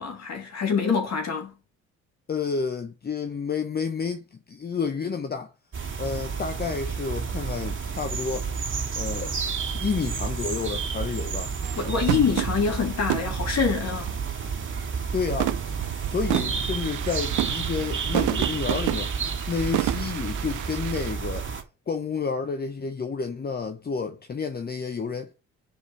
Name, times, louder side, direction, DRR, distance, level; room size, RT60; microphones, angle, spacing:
voice 1, 0.0-1.5 11.8-14.1, left 6 dB, 60° left, 2.9 m, -25 dB
voice 2, 2.3-5.5 6.0-8.5 8.9-9.3 9.8-11.5 15.1-15.6 16.1-19.1 19.5-21.5 21.9-25.3, left 5 dB, 30° left, 0.9 m, -30 dB
sound 1, 5.7-21.6, right 5 dB, 40° right, 2.4 m, -31 dB
sound 2, 11.6-14.9 15.3-21.1, right 17 dB, 85° right, 0.5 m, -31 dB
5.2 x 5.1 x 6.5 m
cardioid pair, 90°, 30 cm